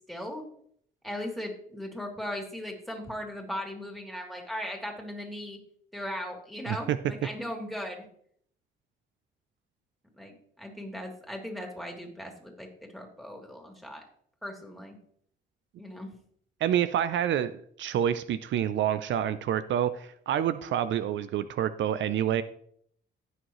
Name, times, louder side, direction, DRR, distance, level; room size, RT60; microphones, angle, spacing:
voice 1, 0.1-0.4 1.0-5.6 5.9-8.1 10.1-12.7 12.9-14.0 14.4-15.0 15.8-16.1, equal, ahead, 1 dB, 2.9 m, -38 dB
voice 2, 16.6-22.4, right 10 dB, 70° right, 13 dB, 0.6 m, -28 dB
16.0 x 6.4 x 3.1 m, 0.64 s
cardioid pair, 90°, 20 cm